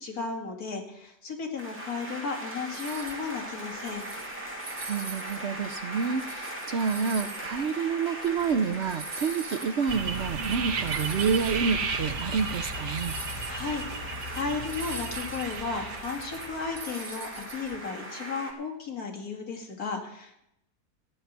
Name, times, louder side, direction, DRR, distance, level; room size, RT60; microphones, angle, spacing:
voice 1, 0.0-4.1 13.0-13.1 13.5-13.9 14.3-20.4, left 4 dB, 60° left, 2 dB, 2.5 m, -34 dB
sound 1, 1.6-18.5, right 1 dB, 5° right, 2.2 m, -40 dB
sound 2, 2.7-3.2 3.7-5.4 5.8-11.6 11.9-12.0 12.2-17.8, right 3 dB, 40° right, 1.4 m, -43 dB
voice 2, 4.9-13.2, right 6 dB, 60° right, 7 dB, 0.7 m, -28 dB
sound 3, 9.9-16.8, right 4 dB, 80° right, 1.7 m, -34 dB
15.0 x 5.7 x 9.3 m, 0.78 s
omnidirectional pair, 1.8 m